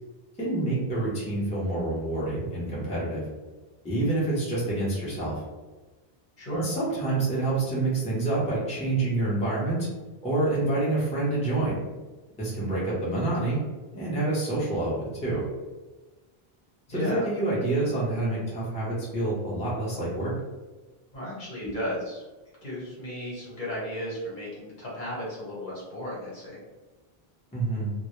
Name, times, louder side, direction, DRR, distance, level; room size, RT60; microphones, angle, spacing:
voice 1, 0.4-3.2 3.8-5.4 6.5-9.9 10.2-11.8 12.4-13.6 13.9-15.4 16.9-20.3 21.6-21.8 27.5-27.9, right 2 dB, 10° left, -8 dB, 0.6 m, -27 dB
voice 2, 16.9-17.3 21.1-22.2 22.6-26.6, equal, 55° left, -7 dB, 1.0 m, -34 dB
2.2 x 2.0 x 2.9 m, 1.2 s
omnidirectional pair, 1.0 m